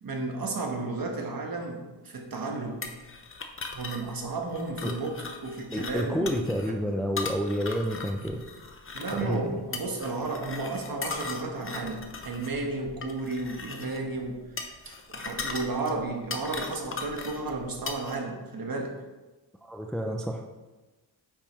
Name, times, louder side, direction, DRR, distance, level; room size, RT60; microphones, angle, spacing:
voice 1, 0.0-2.8 3.7-6.3 6.7-6.8 8.9-18.9, right 3 dB, 50° right, 2 dB, 1.3 m, -33 dB
sound 1, 2.8-18.2, left 4 dB, 30° left, 0.7 m, -39 dB
voice 2, 5.7-8.4 9.1-9.4 19.6-20.4, equal, ahead, 3 dB, 0.4 m, -29 dB
8.6 x 5.5 x 3.1 m, 1.2 s
wide cardioid pair, 115°, 46 cm